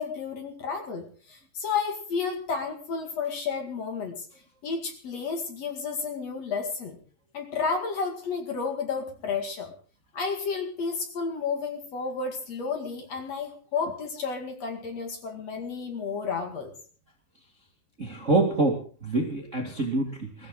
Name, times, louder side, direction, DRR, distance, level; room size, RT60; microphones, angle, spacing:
voice 1, 0.0-4.3 4.6-7.0 7.3-9.7 10.1-16.7, left 5 dB, 45° left, 4 dB, 2.6 m, -31 dB
voice 2, 18.0-20.5, right 2 dB, 85° right, 2 dB, 0.6 m, -26 dB
22.0 x 14.0 x 3.8 m, 0.40 s
omnidirectional pair, 4.9 m